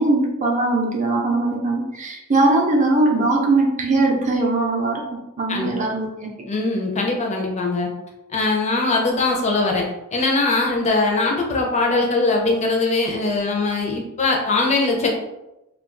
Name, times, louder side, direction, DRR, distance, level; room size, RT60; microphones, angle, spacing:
voice 1, 0.0-5.0 5.4-6.3, right 2 dB, 35° right, -1 dB, 0.6 m, -20 dB
voice 2, 6.5-7.9 8.3-9.8 10.1-15.1, left 3 dB, 30° left, 0 dB, 0.5 m, -21 dB
2.3 x 2.3 x 3.7 m, 0.93 s
head